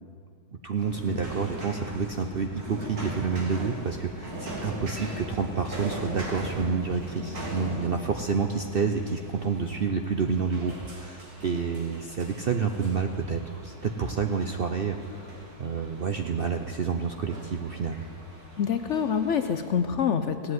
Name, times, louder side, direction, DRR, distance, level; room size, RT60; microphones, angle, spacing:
voice 1, 0.6-15.3 15.6-18.0, right 5 dB, 55° right, 5 dB, 0.6 m, -29 dB
sound 1, 0.8-19.7, right 1 dB, 70° right, 3.1 m, -40 dB
voice 2, 18.6-20.5, left 7 dB, 60° left, 9 dB, 0.8 m, -26 dB
16.0 x 7.9 x 9.4 m, 2.2 s
omnidirectional pair, 1.7 m